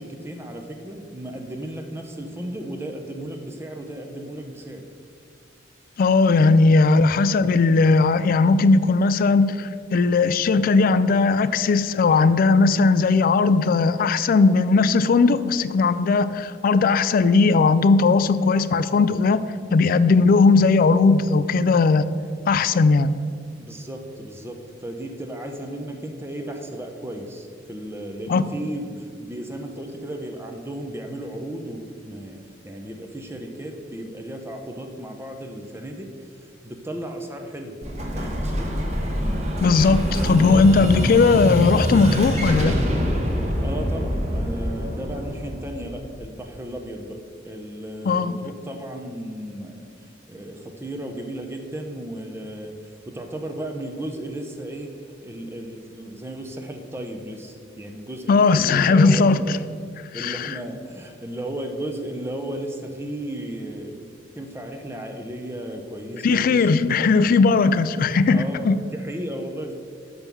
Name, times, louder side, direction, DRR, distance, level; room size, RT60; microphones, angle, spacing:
voice 1, 0.0-4.8 6.4-6.5 23.6-37.8 38.1-38.7 43.6-47.2 47.4-49.9 50.3-54.9 55.2-59.6 60.1-64.1 64.3-66.8 68.3-69.7, right 1 dB, 15° right, 4 dB, 0.6 m, -34 dB
voice 2, 6.0-19.4 19.7-22.1 22.5-23.1 28.3-28.4 39.6-42.8 48.1-48.3 58.3-59.6 60.1-60.5 66.2-68.8, left 4 dB, 50° left, 14 dB, 0.3 m, -18 dB
Explosion, 37.8-46.5, equal, 35° right, 1.1 m, -25 dB
6.0 x 5.4 x 6.8 m, 2.3 s
head